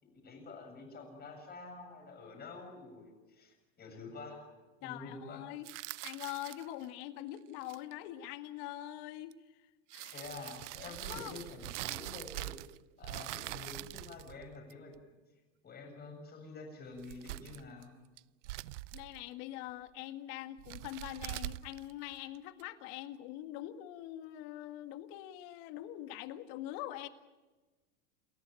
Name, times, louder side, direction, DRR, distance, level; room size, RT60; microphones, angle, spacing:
voice 1, 0.0-4.4 4.8-5.4 10.1-12.6 13.0-14.9 15.6-17.9, left 3 dB, 25° left, 4 dB, 7.7 m, -48 dB
voice 2, 4.8-5.7 6.0-9.6 9.9-10.3 10.8-11.4 18.9-27.1, left 14 dB, 55° left, 9 dB, 2.0 m, -44 dB
sound 1, 5.6-6.8 7.5-7.9 9.3-9.4 9.9-12.8 13.0-15.0 16.9-17.8 18.2-19.2 20.6-22.6, right 18 dB, 75° right, 0.6 m, -43 dB
29.5 x 14.0 x 9.0 m, 1.2 s
supercardioid pair, 125°, 36 cm